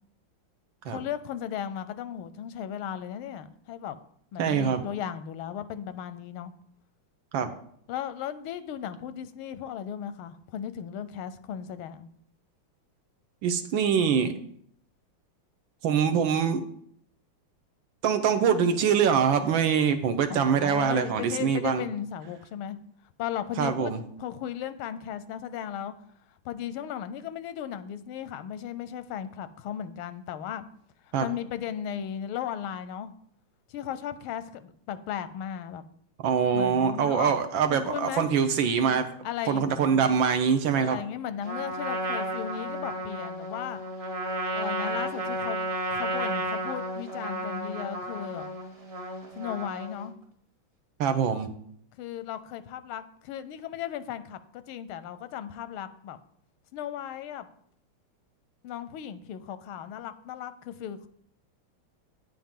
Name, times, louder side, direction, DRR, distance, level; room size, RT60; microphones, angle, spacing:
voice 1, 0.8-4.0 4.3-6.5 7.9-12.1 20.3-22.8 23.2-23.9 24.2-25.9 26.4-30.7 31.0-33.1 33.7-35.8 36.5-38.3 39.2-40.2 40.7-43.8 44.5-48.5 49.3-50.2 52.0-56.2 56.7-57.5 58.6-61.1, left 9 dB, 85° left, 13 dB, 1.5 m, -36 dB
voice 2, 4.4-4.9 7.3-7.5 13.4-14.3 15.8-16.6 18.0-21.8 23.6-24.0 31.1-31.3 36.2-39.1 39.5-41.0 51.0-51.5, right 7 dB, 75° right, 7 dB, 1.4 m, -24 dB
Trumpet, 41.4-50.1, right 1 dB, 35° right, 0.5 m, -33 dB
9.3 x 8.6 x 3.7 m, 0.66 s
omnidirectional pair, 2.3 m